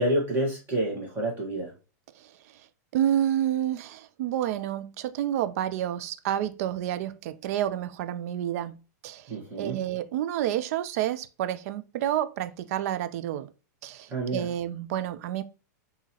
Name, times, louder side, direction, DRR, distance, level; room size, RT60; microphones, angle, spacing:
voice 1, 0.0-1.7 9.3-9.8 14.1-14.4, right 1 dB, 20° right, 1.5 m, -28 dB
voice 2, 2.9-13.5 13.8-15.4, right 11 dB, 55° right, 0.4 m, -29 dB
3.9 x 2.8 x 2.9 m
supercardioid pair, 145°, 10 cm